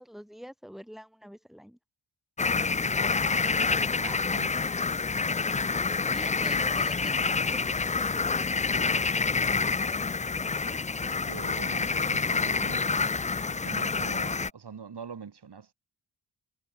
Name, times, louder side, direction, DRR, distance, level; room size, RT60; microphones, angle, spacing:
voice 1, 0.0-1.8 5.8-8.6, equal, ahead, 4.5 m, -46 dB
sound 1, 2.4-14.5, left 4 dB, 20° left, 0.3 m, -27 dB
voice 2, 4.0-4.7 11.0-13.0 13.5-15.7, right 6 dB, 65° right, 7.0 m, -44 dB
wide cardioid pair, 155°, 43 cm